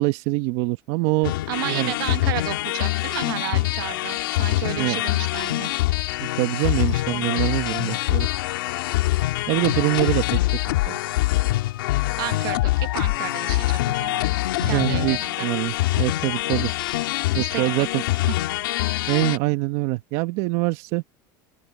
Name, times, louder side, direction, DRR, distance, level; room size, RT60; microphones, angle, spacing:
voice 1, 0.0-1.3 1.6-1.9 4.8-5.0 6.3-8.3 9.5-10.4 10.8-11.0 14.6-16.7 17.3-18.0 19.1-21.0, right 21 dB, 65° right, 1.3 m, -24 dB
sound 1, 1.2-19.4, left 17 dB, 90° left, 2.8 m, -24 dB
voice 2, 1.5-5.7 12.2-14.2 14.7-15.5 17.3-17.9 18.3-18.4, right 19 dB, 85° right, 1.7 m, -32 dB
open air
supercardioid pair, 115°, 11 cm